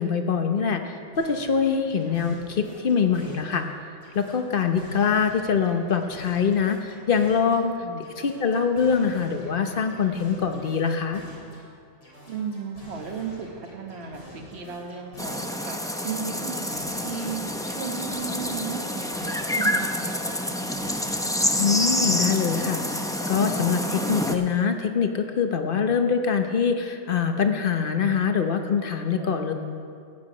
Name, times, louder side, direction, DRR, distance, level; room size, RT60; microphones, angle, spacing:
voice 1, 0.0-3.7 4.1-7.7 8.2-11.2 21.6-29.5, left 6 dB, 50° left, 6 dB, 1.0 m, -24 dB
sound 1, 1.1-3.7 4.0-7.7 8.0-11.7 12.0-15.7 16.0-19.7 20.0-21.1, equal, 75° left, 3.6 m, -46 dB
voice 2, 12.3-20.4 29.2-29.3, right 6 dB, 60° right, 4 dB, 1.4 m, -35 dB
sound 2, 15.2-24.4, left 1 dB, 5° left, 0.4 m, -27 dB
14.5 x 9.7 x 5.0 m, 2.3 s
omnidirectional pair, 1.2 m